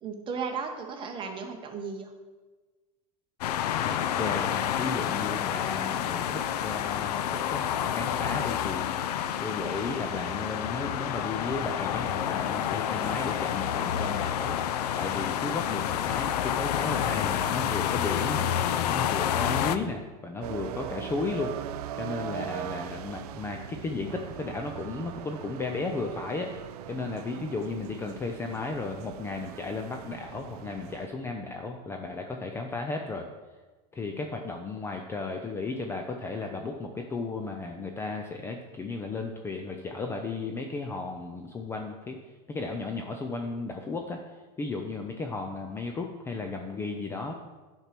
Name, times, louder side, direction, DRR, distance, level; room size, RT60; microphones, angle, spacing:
voice 1, 0.0-2.1, right 5 dB, 25° right, 3 dB, 1.2 m, -35 dB
sound 1, 3.4-19.8, left 10 dB, 80° left, 0.6 m, -29 dB
voice 2, 3.8-9.1 9.4-18.5 18.9-21.5 22.0-26.6 26.9-33.3 33.9-42.2 42.5-44.2 44.6-47.4, left 3 dB, 10° left, 3 dB, 0.5 m, -34 dB
sound 2, 4.7-10.9, left 1 dB, 30° left, 2.1 m, -48 dB
sound 3, 20.4-31.1, right 11 dB, 75° right, 0.5 m, -40 dB
10.0 x 4.5 x 6.0 m, 1.3 s
supercardioid pair, 145°, 20 cm